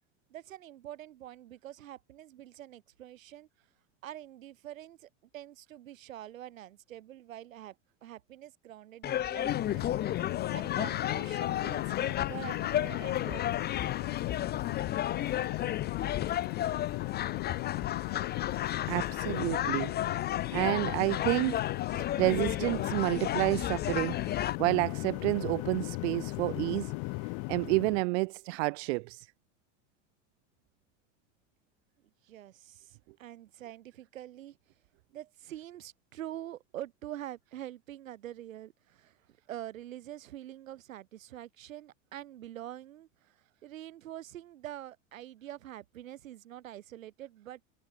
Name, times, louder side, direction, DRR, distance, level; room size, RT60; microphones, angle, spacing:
voice 1, 0.3-3.5 4.0-9.8 10.5-13.6 32.2-34.6 35.1-43.1 43.6-47.6, right 12 dB, 85° right, 5.7 m, -45 dB
sound 1, 9.0-24.6, left 11 dB, 25° left, 0.7 m, -33 dB
sound 2, 9.5-28.0, left 30 dB, 50° left, 1.0 m, -36 dB
voice 2, 18.9-20.0 20.5-21.6 21.9-26.9 27.5-29.3, right 26 dB, 60° right, 0.5 m, -30 dB
hypercardioid pair, 110°, 39 cm